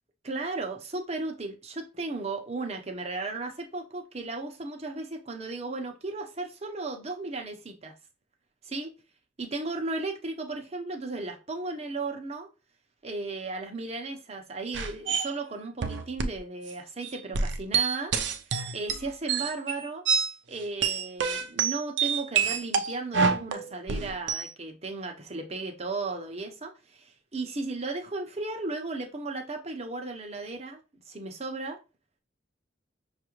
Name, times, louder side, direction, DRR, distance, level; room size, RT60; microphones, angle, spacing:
voice 1, 0.2-7.9 8.6-8.9 9.4-12.5 13.0-18.1 18.7-20.0 20.5-30.8 31.1-31.8, right 3 dB, 35° right, 0.8 m, -35 dB
sound 1, 14.7-15.3 15.8-16.4 16.7-16.8 17.0-20.3 20.6-24.5, right 6 dB, 75° right, 0.5 m, -27 dB
6.0 x 2.4 x 3.0 m
head